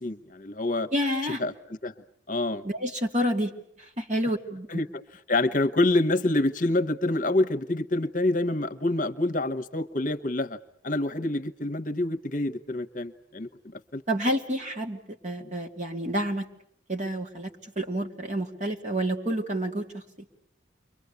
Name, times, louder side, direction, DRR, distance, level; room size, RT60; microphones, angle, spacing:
voice 1, 0.0-0.9 1.2-1.9 2.3-2.7 4.7-5.0 5.3-10.6 10.8-14.0 15.4-15.5, left 2 dB, 40° left, 10 dB, 1.1 m, -27 dB
voice 2, 0.9-1.4 2.6-3.5 4.0-4.7 14.1-16.4 16.9-17.5 17.8-20.0, equal, 40° right, 3 dB, 2.8 m, -29 dB
30.0 x 24.0 x 8.3 m, 0.68 s
head